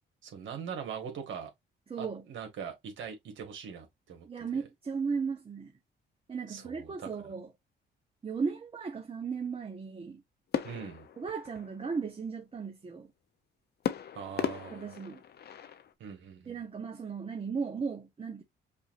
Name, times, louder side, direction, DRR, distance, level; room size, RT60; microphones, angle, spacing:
voice 1, 0.2-1.5 2.0-4.3 6.5-7.1 10.6-11.1 14.1-14.9 16.0-16.6, right 7 dB, 75° right, 1.7 m, -41 dB
voice 2, 1.9-2.2 4.2-5.7 6.3-7.5 8.2-10.2 11.2-13.1 14.7-15.2 16.5-18.4, right 5 dB, 30° right, 0.9 m, -36 dB
sound 1, 10.5-12.1 13.8-15.9, left 9 dB, 55° left, 0.8 m, -37 dB
5.5 x 2.7 x 2.6 m
cardioid pair, 90°, 20 cm